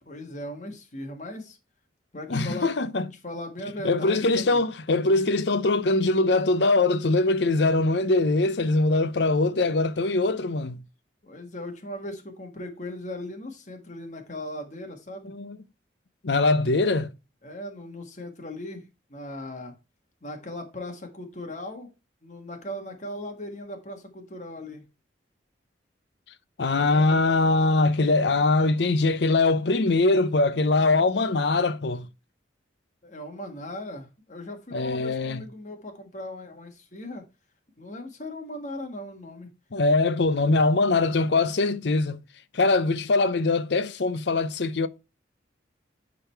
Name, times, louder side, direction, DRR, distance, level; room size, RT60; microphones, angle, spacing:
voice 1, 0.0-1.6 2.1-2.8 3.2-4.6 11.2-15.3 17.4-19.7 20.2-21.9 22.2-24.8 26.7-27.2 33.0-37.2 37.8-39.5, left 1 dB, 40° left, 1.6 m, -38 dB
voice 2, 2.3-3.1 3.8-10.8 15.2-15.6 16.2-17.1 26.6-32.1 34.7-35.4 39.7-42.2 42.5-44.9, left 3 dB, 65° left, 0.6 m, -22 dB
10.0 x 4.0 x 4.5 m
head